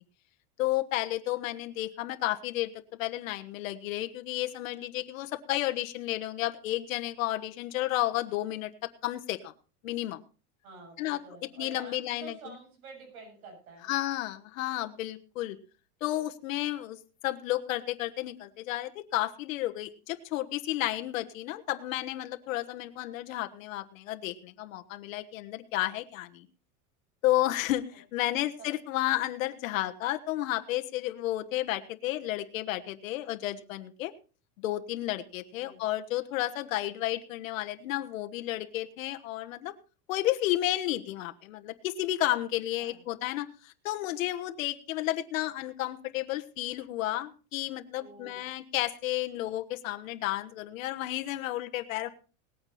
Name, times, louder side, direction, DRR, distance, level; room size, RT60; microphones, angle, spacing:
voice 1, 0.6-8.7 9.0-9.5 9.8-10.2 11.0-11.2 11.6-12.5 13.9-15.6 16.0-17.0 17.2-26.5 27.2-34.1 34.6-39.7 40.1-52.1, left 15 dB, 65° left, 7 dB, 1.3 m, -32 dB
voice 2, 10.6-13.9 28.2-28.4 35.5-35.8 42.8-43.0 48.0-48.5, right 3 dB, 75° right, 2 dB, 7.1 m, -49 dB
19.0 x 8.9 x 4.2 m, 0.35 s
supercardioid pair, 180°, 42 cm